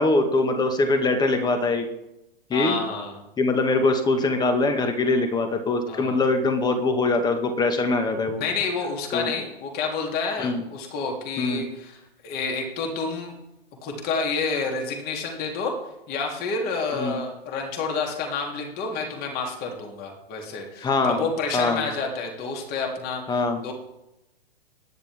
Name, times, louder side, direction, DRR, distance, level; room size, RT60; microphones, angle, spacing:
voice 1, 0.0-1.9 2.5-2.8 3.4-8.4 9.1-9.3 10.4-10.6 11.4-11.6 17.0-17.2 20.8-21.3 21.5-21.9 23.3-23.6, left 3 dB, 15° left, 6 dB, 1.9 m, -23 dB
voice 2, 2.5-3.2 5.9-6.2 8.4-13.3 13.8-15.7 16.1-23.7, left 4 dB, 30° left, 1 dB, 3.3 m, -29 dB
25.5 x 10.5 x 3.7 m, 0.93 s
figure-of-eight pair, 115°, 31 cm